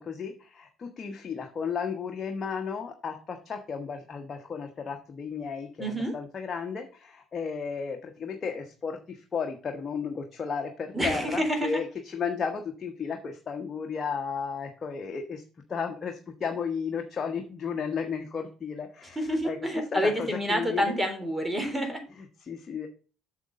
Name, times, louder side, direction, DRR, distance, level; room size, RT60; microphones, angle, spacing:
voice 1, 0.0-15.4 15.7-21.0 22.2-22.9, left 6 dB, 40° left, 4 dB, 1.2 m, -34 dB
voice 2, 5.8-6.1 10.9-11.7 19.1-22.0, equal, 15° right, 5 dB, 3.3 m, -28 dB
7.8 x 6.7 x 3.8 m, 0.37 s
hypercardioid pair, 60°, 0 cm